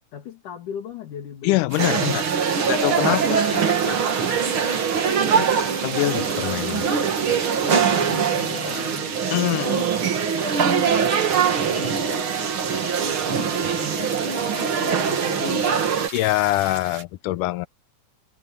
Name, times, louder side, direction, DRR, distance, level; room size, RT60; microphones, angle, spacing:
voice 1, 0.1-1.5 5.2-5.5 6.6-7.0 7.6-9.9 11.7-15.6, left 7 dB, 75° left, 3.9 m, -38 dB
voice 2, 1.4-2.2 2.7-4.1 5.3-5.5 5.8-6.9 9.3-9.8 16.1-17.7, left 17 dB, 90° left, 2.2 m, -24 dB
sound 1, 1.7-17.0, right 5 dB, 70° right, 6.1 m, -37 dB
sound 2, 1.8-16.1, right 6 dB, 45° right, 2.3 m, -22 dB
omnidirectional pair, 3.7 m